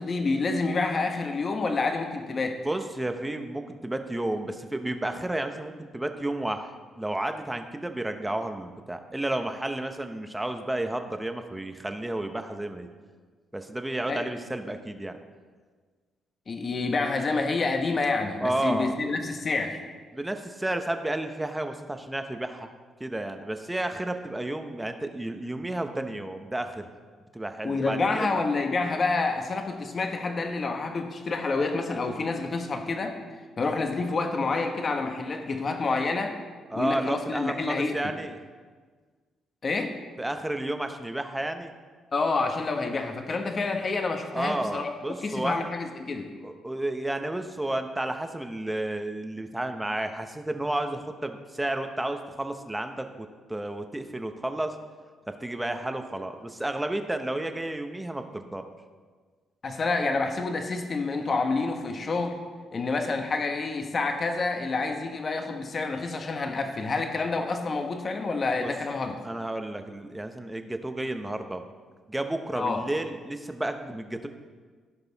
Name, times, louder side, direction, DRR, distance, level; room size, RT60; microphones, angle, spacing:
voice 1, 0.0-2.6 14.1-14.2 16.5-19.8 27.6-33.2 33.6-36.4 36.7-38.0 39.6-40.0 42.1-44.9 45.2-46.3 59.6-62.4 62.7-69.2 72.5-72.8, left 3 dB, 40° left, 5 dB, 1.1 m, -28 dB
voice 2, 2.6-12.9 13.5-15.2 18.4-19.0 20.1-22.7 23.0-26.9 27.3-28.3 36.7-38.4 40.2-41.7 44.3-45.6 46.4-54.8 55.4-58.7 68.6-68.7 69.2-71.6 72.1-74.3, right 1 dB, 10° right, 7 dB, 0.9 m, -32 dB
15.5 x 5.4 x 4.1 m, 1.5 s
cardioid pair, 90°, 0 cm